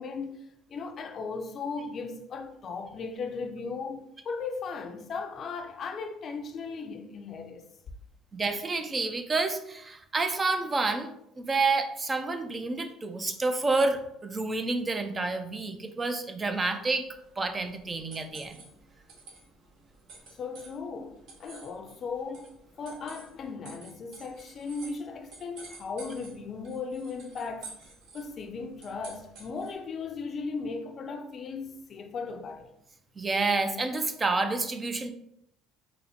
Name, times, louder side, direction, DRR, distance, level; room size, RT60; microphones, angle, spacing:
voice 1, 0.0-7.6 20.4-27.8 28.1-32.7, left 4 dB, 45° left, 0.5 m, -37 dB
voice 2, 8.3-11.1 11.4-17.1 17.4-18.6 33.2-35.1, right 3 dB, 25° right, 0.4 m, -29 dB
sound 1, 17.0-29.9, right 3 dB, 65° right, 1.3 m, -51 dB
3.9 x 2.1 x 4.2 m
cardioid pair, 110°, 0 cm